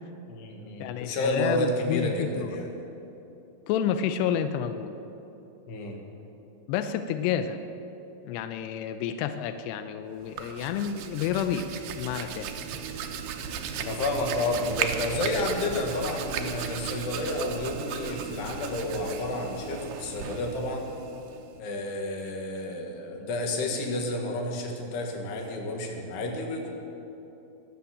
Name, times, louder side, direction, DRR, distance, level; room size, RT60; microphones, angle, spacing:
voice 1, 0.3-2.7 5.7-6.0 13.8-20.9 21.6-26.7, left 2 dB, 70° left, 2 dB, 3.5 m, -30 dB
voice 2, 0.8-2.5 3.7-4.9 6.7-7.6 8.3-11.7 12.0-12.5, left 9 dB, 85° left, 9 dB, 2.4 m, -29 dB
Hands, 10.2-21.6, right 7 dB, 75° right, 2.3 m, -35 dB
21.5 x 7.3 x 8.5 m, 2.9 s
omnidirectional pair, 5.5 m